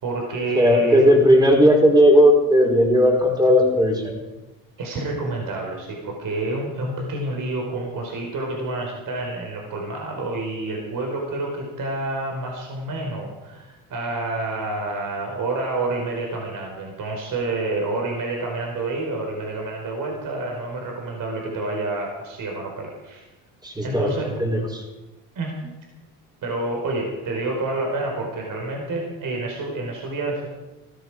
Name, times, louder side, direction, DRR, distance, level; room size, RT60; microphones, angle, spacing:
voice 1, 0.0-1.1 4.8-23.2 23.8-24.3 25.3-25.7 26.4-30.5, right 2 dB, 50° right, 1 dB, 4.7 m, -28 dB
voice 2, 0.5-4.2 23.6-24.1 24.4-24.8, equal, 10° right, 1 dB, 5.4 m, -16 dB
19.0 x 14.0 x 5.0 m, 1.1 s
supercardioid pair, 90°, 41 cm